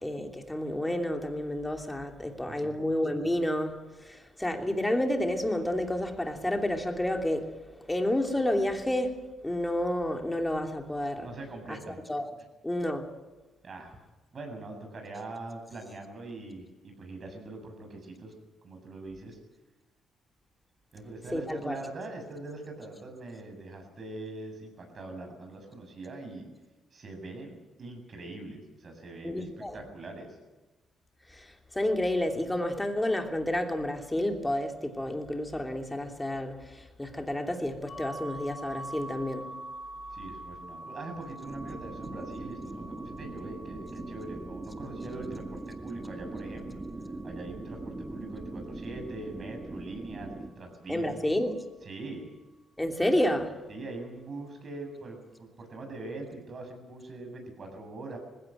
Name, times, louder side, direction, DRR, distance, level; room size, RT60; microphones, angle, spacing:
voice 1, 0.0-7.5 7.9-11.3 11.7-11.8 12.1-12.2 12.6-13.1 21.3-21.8 29.2-29.8 31.3-31.5 31.7-39.6 50.9-51.5 52.8-53.5, left 1 dB, 10° left, 3.0 m, -30 dB
voice 2, 2.5-2.8 11.2-12.0 13.6-14.0 14.3-18.3 18.6-19.4 20.9-26.5 26.9-30.4 40.1-46.8 47.2-50.3 50.6-51.1 51.8-52.3 53.7-58.2, right 2 dB, 45° right, 7.4 m, -42 dB
sound 1, 37.9-49.6, right 1 dB, 50° left, 4.9 m, -46 dB
sound 2, 41.4-50.5, right 2 dB, 25° right, 2.1 m, -41 dB
20.0 x 16.5 x 9.1 m
cardioid pair, 90°, 0 cm